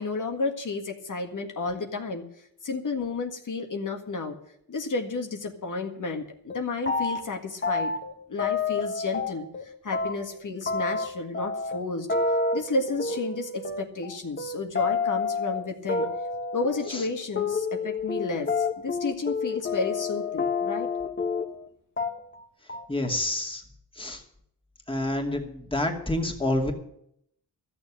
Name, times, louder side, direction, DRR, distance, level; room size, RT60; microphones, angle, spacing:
voice 1, 0.0-2.3 2.6-4.4 4.7-7.9 8.3-12.1 12.5-16.1 16.5-20.9, left 3 dB, 50° left, 4 dB, 1.8 m, -32 dB
sound 1, 6.1-6.2 6.5-7.3 7.6-9.6 9.9-21.7 22.0-22.4 22.7-23.1, left 4 dB, 30° left, 1.6 m, -29 dB
voice 2, 22.9-23.6 24.0-24.2 24.9-26.7, left 1 dB, 15° left, 2 dB, 2.5 m, -28 dB
14.0 x 7.0 x 10.0 m, 0.72 s
cardioid pair, 95°, 38 cm